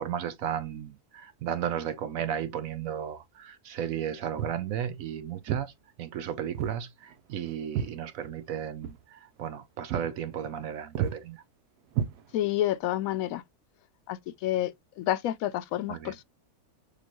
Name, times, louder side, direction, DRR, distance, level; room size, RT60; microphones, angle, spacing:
voice 1, 0.0-5.7 6.0-11.4 15.9-16.1, right 9 dB, 70° right, 0.9 m, -34 dB
Walk footsteps, 4.4-4.7 5.5-5.7 6.5-6.8 7.1-8.5 8.8-9.0 9.4-9.6 9.9-10.1 10.4-10.7 11.0-11.2 11.9-12.6, right 9 dB, 85° right, 1.2 m, -32 dB
voice 2, 12.3-13.4 14.1-14.7 15.0-16.2, left 13 dB, 70° left, 0.9 m, -29 dB
6.5 x 2.6 x 3.0 m
omnidirectional pair, 1.6 m